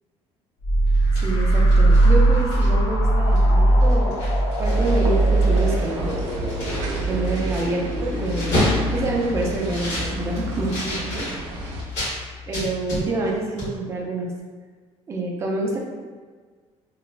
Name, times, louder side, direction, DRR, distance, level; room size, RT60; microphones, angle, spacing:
sound 1, 0.6-12.0, right 1 dB, 45° left, 0.5 m, -21 dB
sound 2, 0.9-2.9 3.4-3.5 3.8-5.1 5.3-12.2 12.5-13.3 13.6-13.7, left 1 dB, 70° left, 1.3 m, -30 dB
voice 1, 1.2-4.1 4.6-6.2 7.0-11.3 12.5-14.3 15.1-15.8, right 2 dB, 25° right, -1 dB, 0.4 m, -27 dB
sound 3, 4.7-11.8, right 1 dB, 90° right, 0.5 m, -34 dB
2.9 x 2.2 x 2.4 m, 1.5 s
cardioid pair, 170°, 12 cm